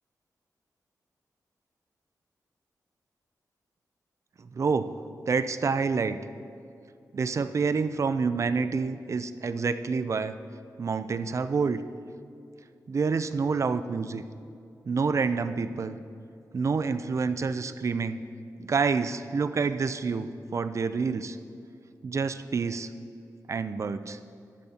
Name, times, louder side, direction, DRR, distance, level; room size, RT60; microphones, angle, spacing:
voice 1, 4.4-4.9 5.3-6.2 7.1-10.4 10.8-11.8 12.9-14.2 14.9-16.0 16.5-18.2 18.6-21.4 22.0-22.9 23.5-24.2, right 5 dB, 50° right, 12 dB, 0.4 m, -28 dB
12.5 x 12.0 x 2.9 m, 2.5 s
wide cardioid pair, 105°, 7 cm